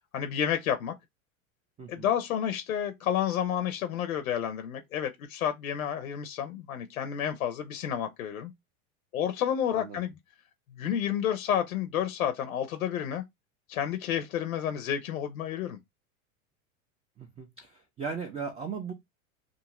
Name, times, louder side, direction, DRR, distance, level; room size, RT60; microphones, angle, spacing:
voice 1, 0.1-0.9 1.9-8.5 9.1-10.2 10.8-13.2 13.7-15.8, left 9 dB, 85° left, 0.6 m, -30 dB
voice 2, 17.2-18.9, right 5 dB, 15° right, 0.4 m, -37 dB
2.5 x 2.4 x 2.9 m
hypercardioid pair, 100°, 42 cm